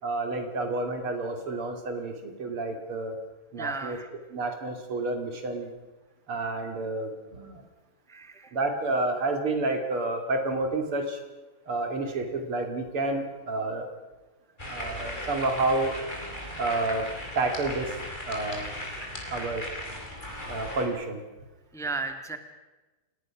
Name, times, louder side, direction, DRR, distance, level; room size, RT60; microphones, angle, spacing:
voice 1, 0.0-3.2 3.5-4.0 4.3-5.7 6.3-7.6 8.5-11.2 11.7-13.9 14.6-16.0 16.6-17.1 17.4-18.0 18.3-18.7 19.3-19.7 20.5-21.2, right 2 dB, 80° right, 5 dB, 3.7 m, -29 dB
voice 2, 3.6-4.1 8.1-8.5 12.1-12.2 20.4-20.5 21.7-22.4, right 3 dB, ahead, 7 dB, 1.5 m, -35 dB
sound 1, 14.6-20.9, left 1 dB, 20° left, 4.7 m, -37 dB
29.0 x 18.5 x 6.1 m, 1.2 s
omnidirectional pair, 2.4 m